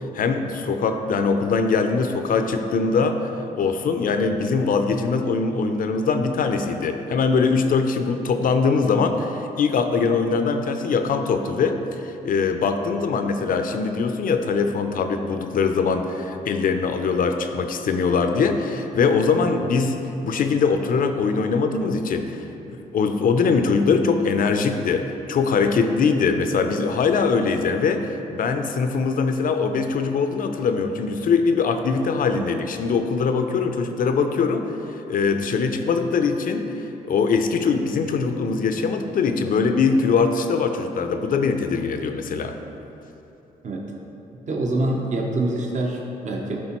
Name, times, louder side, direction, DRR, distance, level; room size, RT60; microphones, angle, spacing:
voice 1, 0.1-3.3 3.6-20.0 20.2-34.6 35.1-42.5, left 5 dB, 55° left, 7 dB, 0.5 m, -22 dB
voice 2, 44.5-46.6, right 2 dB, 45° right, 0 dB, 0.8 m, -25 dB
11.0 x 3.6 x 3.0 m, 3.0 s
cardioid pair, 70°, 17 cm